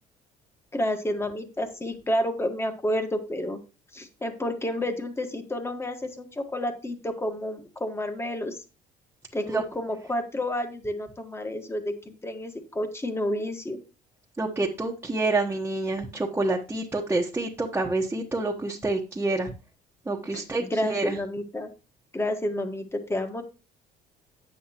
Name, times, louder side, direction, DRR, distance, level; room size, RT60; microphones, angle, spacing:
voice 1, 0.7-3.6 3.9-8.6 9.3-13.8 20.3-21.7 22.1-23.4, left 1 dB, 15° left, 7 dB, 1.5 m, -30 dB
voice 2, 14.4-19.5 20.0-21.2, right 2 dB, 15° right, -1 dB, 1.2 m, -28 dB
9.3 x 8.4 x 2.9 m, 0.31 s
cardioid pair, 110°, 17 cm